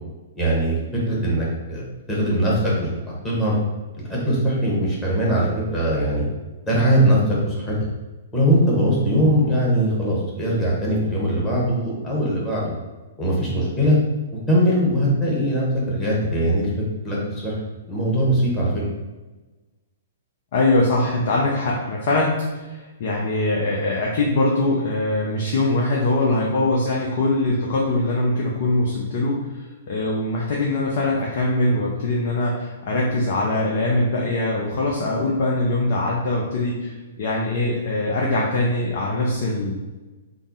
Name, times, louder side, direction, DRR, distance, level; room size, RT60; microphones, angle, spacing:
voice 1, 0.3-3.5 4.0-6.2 6.6-7.8 8.3-12.7 13.2-14.0 14.5-16.7 17.0-17.2 17.4-17.5 17.9-18.8, equal, 15° left, -6 dB, 1.2 m, -21 dB
voice 2, 20.5-39.7, left 2 dB, 45° left, -3 dB, 0.6 m, -22 dB
3.5 x 2.0 x 3.9 m, 1.2 s
figure-of-eight pair, 115°, 0 cm